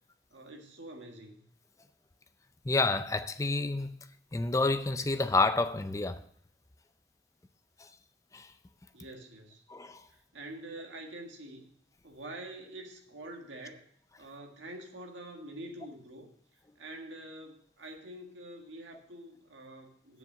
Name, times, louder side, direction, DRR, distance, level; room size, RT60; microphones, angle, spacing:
voice 1, 0.3-1.4 8.9-9.6 10.1-11.7 12.0-13.9 14.2-20.2, right 1 dB, 90° right, 1.8 m, -46 dB
voice 2, 2.6-4.0 4.3-6.2 7.8-7.9 8.3-8.5 9.7-10.0, left 3 dB, 15° left, 0.5 m, -29 dB
7.2 x 6.7 x 7.2 m
head